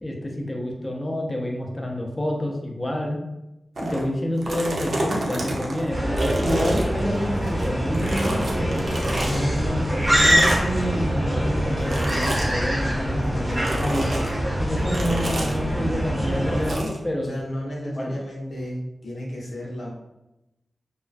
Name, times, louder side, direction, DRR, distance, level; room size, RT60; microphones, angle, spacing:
voice 1, 0.0-3.2 3.8-8.8 9.2-14.2 14.6-17.3 18.0-18.1, equal, 20° left, 0 dB, 0.4 m, -28 dB
sound 1, 3.7-4.0 4.4-7.7 7.9-9.4 10.1-10.8 11.9-12.5 13.6-14.3 14.9-15.6 16.6-17.0, right 1 dB, 60° right, 0.4 m, -29 dB
sound 2, 5.9-16.8, equal, 20° right, 0.7 m, -24 dB
voice 2, 17.2-19.9, equal, 75° left, -4 dB, 0.7 m, -33 dB
2.3 x 2.2 x 2.4 m, 0.94 s
wide cardioid pair, 140°, 0 cm